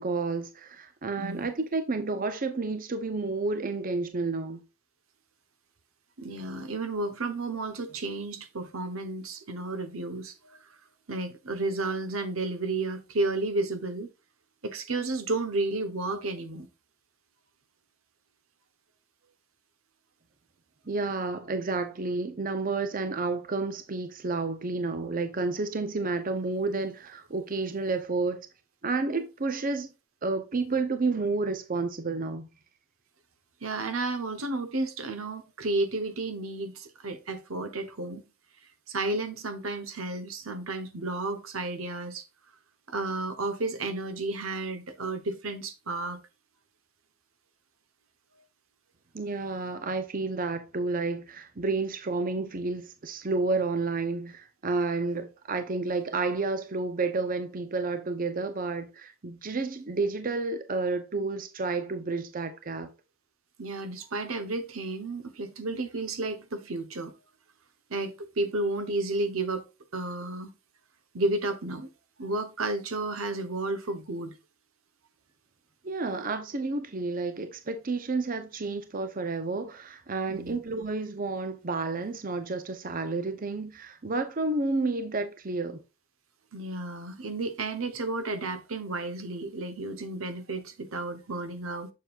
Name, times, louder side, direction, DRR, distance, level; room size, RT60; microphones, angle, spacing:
voice 1, 0.0-4.6 20.9-28.5 28.8-29.9 30.2-32.5 49.1-62.9 75.8-85.8, right 3 dB, 40° right, 0.7 m, -30 dB
voice 2, 1.2-1.5 6.2-10.6 11.1-14.1 14.6-16.7 33.6-38.2 38.9-42.3 42.9-46.2 63.6-67.1 67.9-69.6 69.9-70.5 71.1-71.9 72.2-74.3 80.3-80.6 86.5-91.9, right 2 dB, 80° right, 1.1 m, -32 dB
7.4 x 6.9 x 2.5 m
head